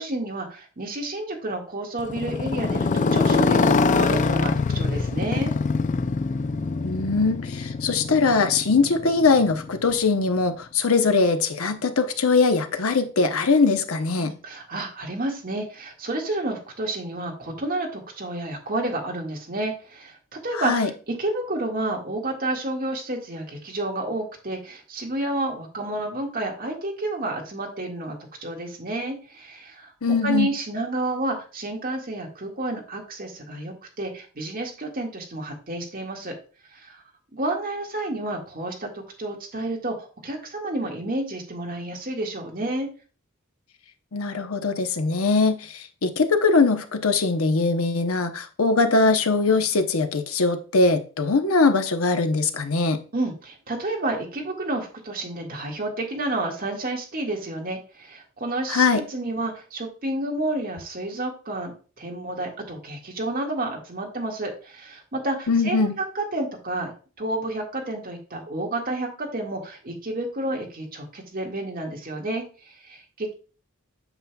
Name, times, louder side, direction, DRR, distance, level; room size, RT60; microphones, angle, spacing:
voice 1, 0.0-5.5 14.2-28.2 28.4-29.9 30.2-36.4 36.7-37.0 37.3-42.9 53.1-65.9 66.2-66.9 67.2-73.3, right 2 dB, 40° right, 0 dB, 1.8 m, -30 dB
Motorcycle, 2.0-10.0, left 4 dB, 35° left, 0.3 m, -24 dB
voice 2, 6.8-14.3 20.5-20.9 30.0-30.5 44.1-53.0 58.7-59.0 65.5-65.9, left 4 dB, 80° left, 7 dB, 0.9 m, -21 dB
8.0 x 5.6 x 2.3 m, 0.36 s
head